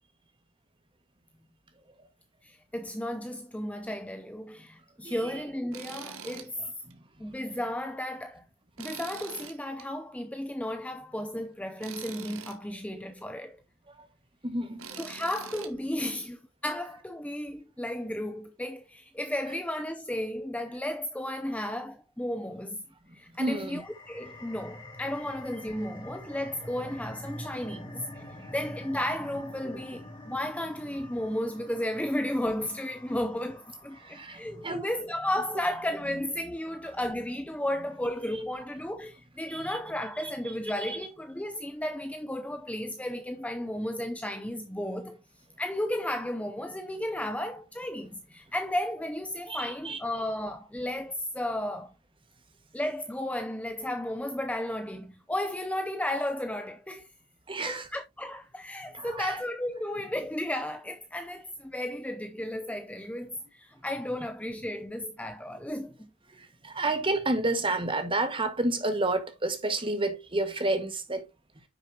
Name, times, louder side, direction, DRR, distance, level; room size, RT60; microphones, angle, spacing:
voice 1, 2.4-6.7 7.2-8.4 8.8-13.6 15.0-22.8 23.1-28.2 28.5-45.2 45.6-51.9 52.7-57.1 57.7-66.1, left 1 dB, 5° left, 0.5 m, -34 dB
voice 2, 5.0-5.4 6.2-6.3 6.6-7.0 13.9-14.1 14.4-15.0 23.1-23.8 27.6-27.8 28.1-28.5 29.6-29.7 33.9-34.9 39.5-39.8 40.2-41.0 49.5-50.0 57.5-57.9 58.9-59.4 65.5-65.6 66.3-71.3, right 2 dB, 25° right, 1.6 m, -31 dB
Tools, 5.7-6.5 6.9-7.0 8.8-9.8 11.8-12.6 14.8-15.7, right 6 dB, 65° right, 1.6 m, -43 dB
sound 1, 23.5-34.7, left 1 dB, 20° left, 3.0 m, -46 dB
9.8 x 6.4 x 2.8 m
head